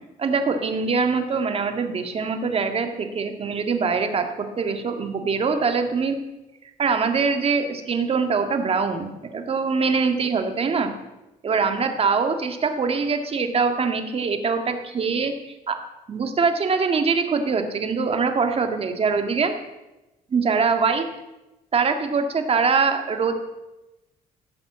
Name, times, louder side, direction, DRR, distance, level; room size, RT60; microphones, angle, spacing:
voice 1, 0.2-6.2 6.8-10.9 11.4-15.8 16.1-19.5 20.3-21.1 21.7-23.3, right 5 dB, 40° right, 6 dB, 1.9 m, -23 dB
16.0 x 7.8 x 7.5 m, 1.0 s
cardioid pair, 125°, 16 cm